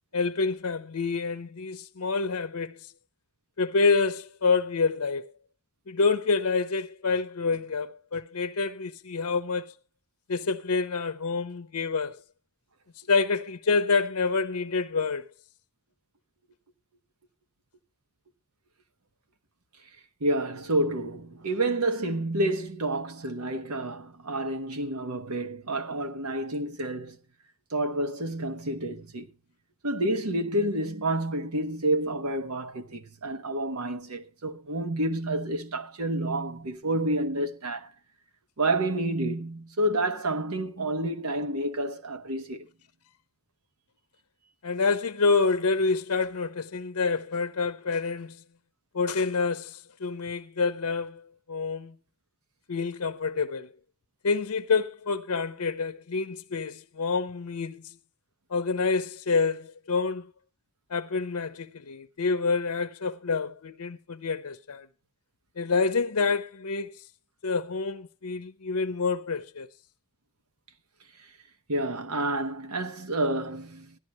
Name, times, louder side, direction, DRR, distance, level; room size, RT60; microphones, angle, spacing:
voice 1, 0.1-2.9 3.6-5.3 5.9-9.7 10.3-12.2 13.1-15.3 44.6-48.4 48.9-51.9 52.7-53.7 54.2-58.0 58.5-60.3 60.9-64.9 65.6-67.0 67.4-69.7, left 4 dB, 75° left, 0.7 m, -27 dB
voice 2, 20.2-27.2 27.7-29.3 29.8-37.9 38.6-42.7 71.7-74.0, right 1 dB, 80° right, 1.2 m, -29 dB
16.5 x 12.0 x 3.0 m
head